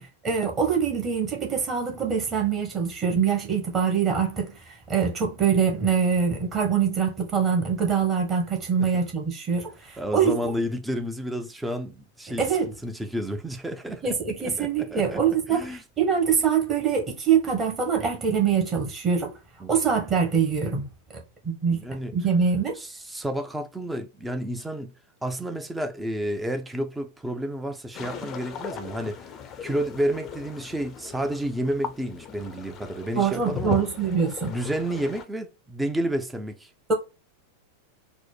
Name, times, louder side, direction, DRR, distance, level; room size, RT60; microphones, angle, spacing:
voice 1, 0.2-10.4 12.4-12.7 14.0-19.3 19.7-20.9 21.1-21.8 22.1-22.8 33.1-34.5 36.9-37.0, right 6 dB, 25° right, 1.3 m, -24 dB
voice 2, 10.0-12.5 12.8-14.2 14.4-15.2 15.5-15.8 19.6-19.7 21.7-22.1 22.8-24.9 25.2-29.3 29.6-33.8 34.4-36.7, right 1 dB, 5° right, 0.6 m, -30 dB
sound 1, 27.9-35.2, left 8 dB, 30° left, 0.6 m, -38 dB
4.4 x 2.1 x 4.3 m
figure-of-eight pair, 90°, 0 cm